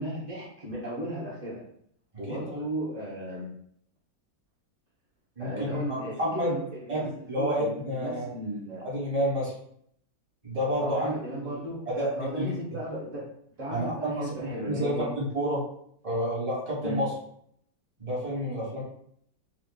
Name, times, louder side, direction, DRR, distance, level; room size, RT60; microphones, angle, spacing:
voice 1, 0.0-1.6 2.2-3.5 5.4-8.9 10.8-13.3 13.6-15.1 16.8-17.0, right 1 dB, 40° right, -7 dB, 0.5 m, -35 dB
voice 2, 5.4-6.5 6.9-7.0 7.3-8.3 8.8-9.5 10.4-11.1 11.4-11.5 12.0-12.5 13.7-15.6 16.0-17.1 18.0-18.8, equal, 25° right, -5 dB, 1.1 m, -29 dB
3.0 x 2.4 x 3.7 m, 0.67 s
omnidirectional pair, 2.0 m